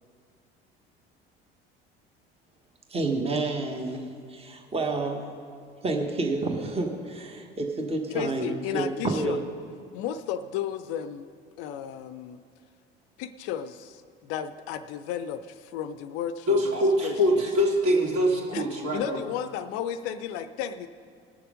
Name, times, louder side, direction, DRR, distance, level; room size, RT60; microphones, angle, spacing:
voice 1, 2.9-5.3 5.8-9.4, right 3 dB, 20° right, 3 dB, 1.4 m, -29 dB
voice 2, 8.1-9.5 9.9-11.3 11.6-12.4 13.2-16.7 17.0-17.5 18.5-20.9, left 9 dB, 50° left, 12 dB, 0.5 m, -34 dB
voice 3, 16.5-19.2, equal, 50° right, -1 dB, 2.6 m, -23 dB
18.5 x 6.7 x 5.1 m, 2.2 s
figure-of-eight pair, 60°, 30 cm